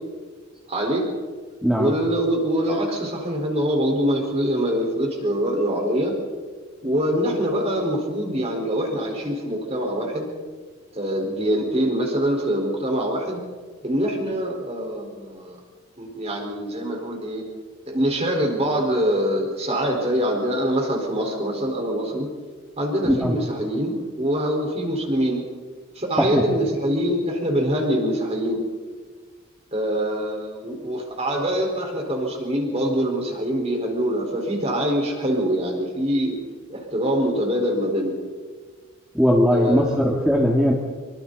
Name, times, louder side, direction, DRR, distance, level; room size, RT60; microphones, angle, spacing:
voice 1, 0.7-1.1 1.8-6.2 6.8-10.3 10.9-13.4 13.8-15.6 16.0-17.5 17.9-22.3 22.8-25.5 25.9-28.6 29.7-36.4 36.7-38.2 39.5-40.0, equal, 30° right, 1 dB, 4.6 m, -24 dB
voice 2, 1.6-1.9 23.0-23.3 26.2-26.4 39.1-40.7, equal, 5° right, -2 dB, 2.0 m, -19 dB
26.0 x 24.5 x 4.1 m, 1.5 s
head